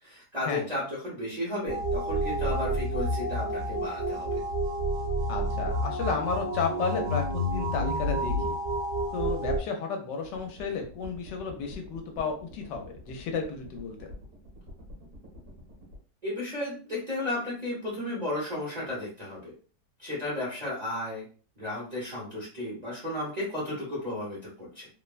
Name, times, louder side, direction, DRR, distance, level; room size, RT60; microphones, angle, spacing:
voice 1, 0.0-4.4 16.2-19.5 20.0-21.2 21.6-24.9, left 1 dB, 30° right, -6 dB, 0.8 m, -34 dB
sound 1, 1.7-9.6, equal, 80° right, 1.3 m, -29 dB
voice 2, 5.3-8.6 9.1-14.1, left 4 dB, 75° left, 3 dB, 1.2 m, -32 dB
sound 2, 10.2-16.0, left 1 dB, 45° right, 1.2 m, -47 dB
3.2 x 2.1 x 2.3 m, 0.39 s
omnidirectional pair, 1.9 m